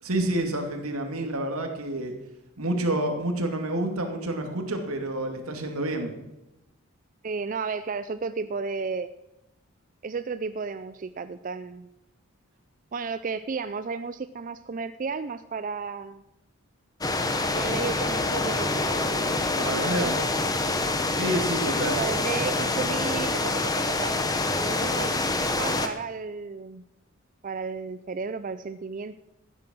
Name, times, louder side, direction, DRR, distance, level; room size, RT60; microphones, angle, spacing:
voice 1, 0.0-2.1 2.6-6.1 19.2-20.1 21.1-22.0, right 1 dB, 80° right, 4 dB, 2.4 m, -29 dB
voice 2, 7.2-9.1 10.0-11.9 12.9-16.2 17.5-20.3 21.8-24.1 24.7-26.8 27.4-29.2, right 4 dB, 35° right, 11 dB, 0.4 m, -33 dB
sound 1, 17.0-25.9, left 2 dB, 15° left, 1.0 m, -26 dB
14.5 x 9.5 x 6.2 m, 0.93 s
head